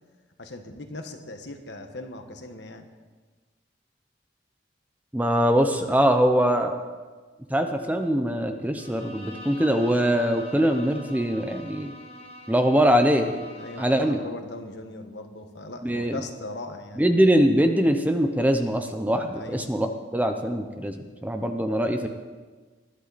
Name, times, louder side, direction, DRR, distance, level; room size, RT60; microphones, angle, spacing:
voice 1, 0.4-2.9 13.5-17.0 19.3-19.6, left 2 dB, 70° left, 6 dB, 1.4 m, -39 dB
voice 2, 5.1-6.7 7.5-11.9 12.5-13.4 13.8-14.2 15.8-16.2 17.0-22.1, equal, 10° right, 6 dB, 0.8 m, -22 dB
Bowed string instrument, 8.8-14.2, left 1 dB, 30° left, 1.2 m, -44 dB
20.5 x 11.5 x 4.2 m, 1.4 s
head